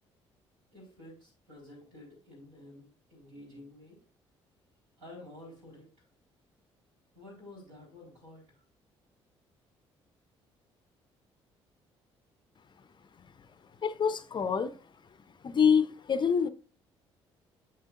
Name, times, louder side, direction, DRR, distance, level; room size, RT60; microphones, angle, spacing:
voice 1, 0.7-4.0 5.0-5.9 7.1-8.5, left 1 dB, 70° right, 3.8 m, -51 dB
voice 2, 13.8-14.8 15.4-16.5, left 7 dB, 35° left, 0.5 m, -26 dB
8.8 x 6.7 x 2.4 m
figure-of-eight pair, 45°, 14 cm